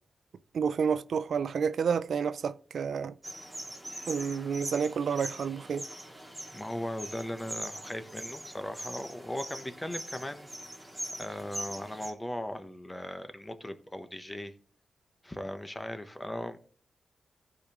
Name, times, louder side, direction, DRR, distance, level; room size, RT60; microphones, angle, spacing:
voice 1, 0.5-3.1 4.1-5.8, right 6 dB, 75° right, 0.3 m, -30 dB
sound 1, 3.2-12.1, right 1 dB, 10° right, 2.1 m, -42 dB
voice 2, 6.5-10.5 11.2-14.5 15.2-16.6, left 1 dB, 15° left, 1.1 m, -38 dB
15.0 x 5.1 x 3.6 m
cardioid pair, 75°, 0 cm